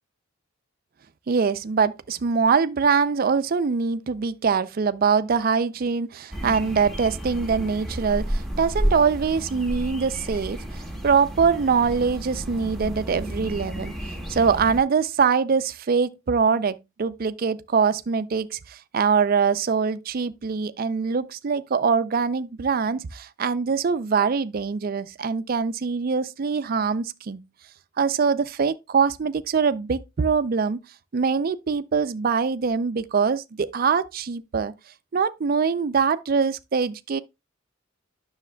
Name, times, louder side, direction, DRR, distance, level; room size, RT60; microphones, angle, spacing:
voice 1, 1.3-13.9 14.3-27.4 28.0-30.8 31.1-34.7 35.1-37.2, right 5 dB, 45° right, 0.4 m, -23 dB
sound 1, 6.3-14.8, equal, ahead, 1.1 m, -31 dB
9.9 x 6.4 x 2.2 m
head